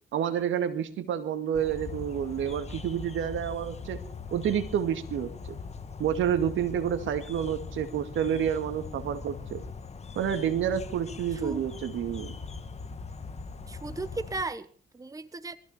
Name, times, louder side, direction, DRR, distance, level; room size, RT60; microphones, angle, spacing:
voice 1, 0.1-4.0 4.3-5.3 6.0-9.6 10.2-12.3, right 9 dB, 75° right, 9 dB, 2.2 m, -29 dB
sound 1, 1.5-14.4, left 4 dB, 35° left, 1.6 m, -41 dB
voice 2, 11.3-11.6 13.7-15.6, right 2 dB, 15° right, 13 dB, 1.2 m, -36 dB
21.0 x 15.0 x 4.5 m, 0.43 s
cardioid pair, 90°, 20 cm